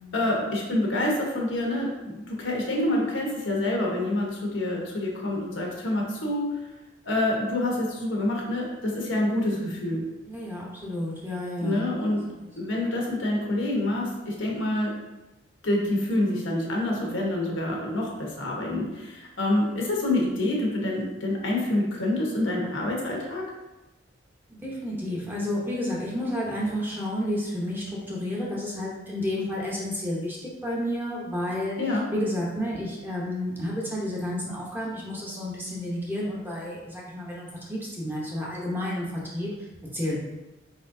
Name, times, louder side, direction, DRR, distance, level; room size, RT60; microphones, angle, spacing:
voice 1, 0.1-6.5 7.0-10.0 11.6-12.2 12.6-14.9 15.6-23.4 31.8-32.0, left 1 dB, 90° left, -1 dB, 1.1 m, -27 dB
voice 2, 10.3-12.2 24.5-30.4 30.6-31.8 32.1-39.7 39.9-40.2, left 1 dB, 10° right, -5 dB, 0.8 m, -31 dB
4.4 x 4.1 x 2.7 m, 1.0 s
head